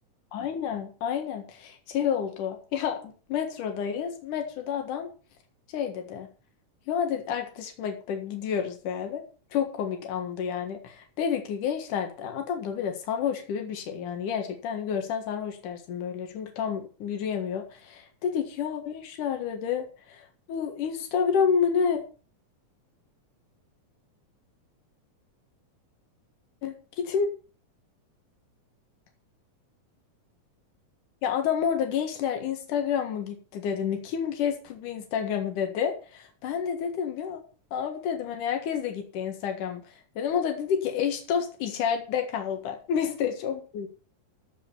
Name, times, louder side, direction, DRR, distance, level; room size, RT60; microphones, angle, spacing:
voice 1, 0.3-5.1 5.7-6.3 6.9-9.2 9.5-22.0 26.6-27.3 31.2-37.4 37.7-39.8 40.2-43.9, left 7 dB, 80° left, 4 dB, 3.2 m, -29 dB
15.0 x 5.1 x 6.9 m, 0.37 s
omnidirectional pair, 3.6 m